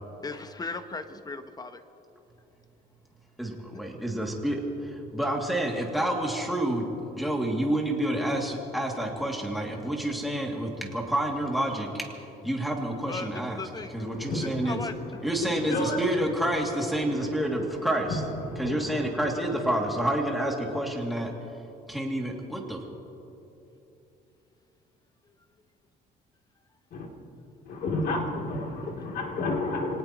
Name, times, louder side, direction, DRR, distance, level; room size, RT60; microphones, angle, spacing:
voice 1, 0.2-1.8 3.7-3.8 13.1-13.9 14.4-14.9, left 3 dB, 25° left, 9 dB, 0.9 m, -37 dB
voice 2, 3.4-12.1 12.4-13.6 13.9-14.8 15.2-18.2 18.6-21.4 21.9-22.8, right 1 dB, ahead, -1 dB, 2.5 m, -29 dB
voice 3, 14.0-16.0 17.0-17.4 17.7-17.8 18.1-18.2 18.5-19.1 26.9-27.1 27.7-30.0, left 2 dB, 65° left, 0 dB, 3.0 m, -32 dB
25.5 x 18.5 x 3.0 m, 2.9 s
cardioid pair, 110°, 17 cm